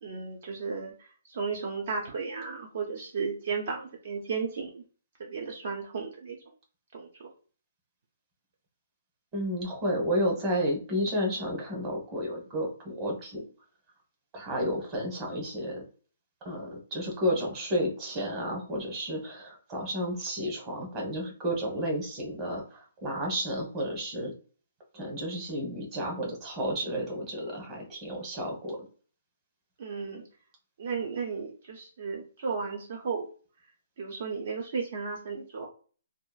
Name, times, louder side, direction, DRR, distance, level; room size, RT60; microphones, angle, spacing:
voice 1, 0.0-4.8 5.2-6.4 6.9-7.2 29.8-30.2 30.8-33.3 34.0-35.7, right 5 dB, 60° right, 2 dB, 0.6 m, -34 dB
voice 2, 9.3-13.4 14.3-15.8 16.4-24.3 24.9-28.8, equal, 25° right, 0 dB, 1.1 m, -31 dB
2.9 x 2.2 x 2.4 m, 0.39 s
hypercardioid pair, 140°, 0 cm